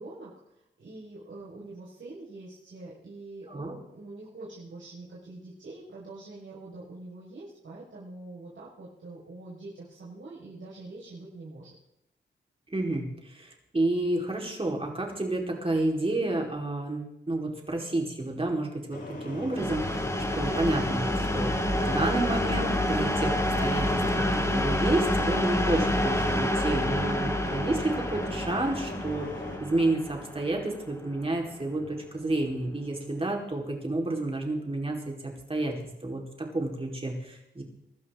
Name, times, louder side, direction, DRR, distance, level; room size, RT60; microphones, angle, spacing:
voice 1, 0.0-11.8, right 2 dB, 80° right, -7 dB, 5.7 m, -44 dB
voice 2, 12.7-20.1 20.4-21.5 21.8-29.3 29.6-37.6, right 2 dB, 30° right, 0 dB, 4.6 m, -30 dB
sound 1, 18.9-29.6, left 2 dB, 70° left, 6.4 m, -39 dB
sound 2, 19.5-31.2, left 1 dB, 15° left, 2.9 m, -28 dB
24.0 x 12.5 x 3.9 m, 0.85 s
wide cardioid pair, 80°, 20 cm